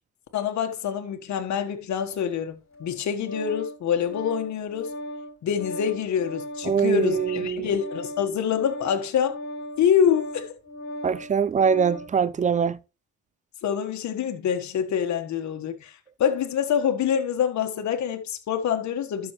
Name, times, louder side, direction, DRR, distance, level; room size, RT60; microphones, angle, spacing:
voice 1, 0.3-4.9 5.4-9.4 9.8-10.5 13.6-19.3, left 8 dB, 65° left, 1.4 m, -26 dB
Organ, 2.7-12.1, equal, 45° left, 3.4 m, -38 dB
voice 2, 6.7-7.7 11.0-12.8, right 6 dB, 25° right, 0.5 m, -23 dB
12.0 x 6.2 x 3.1 m
cardioid pair, 90°, 30 cm